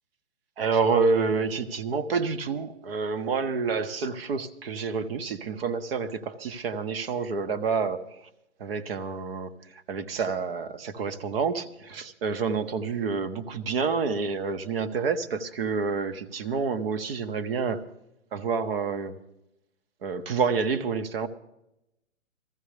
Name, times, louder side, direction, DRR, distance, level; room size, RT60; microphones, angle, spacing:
voice 1, 0.6-8.1 8.6-17.8 18.3-19.2 20.0-21.3, right 5 dB, 45° right, 12 dB, 1.3 m, -28 dB
21.5 x 15.0 x 3.4 m, 0.85 s
hypercardioid pair, 140°, 40 cm